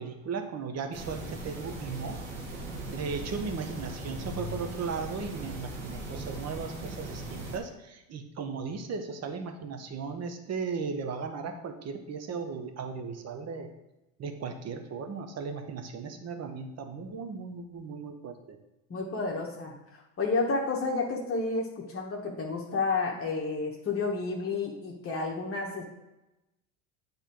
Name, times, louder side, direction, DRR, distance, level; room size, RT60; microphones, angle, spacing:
voice 1, 0.0-2.2 2.9-13.7 14.2-18.6, right 5 dB, 40° right, 7 dB, 1.1 m, -36 dB
sound 1, 0.9-7.6, right 2 dB, 80° right, 1.5 m, -39 dB
voice 2, 18.9-25.8, left 3 dB, 35° left, -1 dB, 1.3 m, -31 dB
8.1 x 3.5 x 4.5 m, 0.97 s
hypercardioid pair, 85°, 40 cm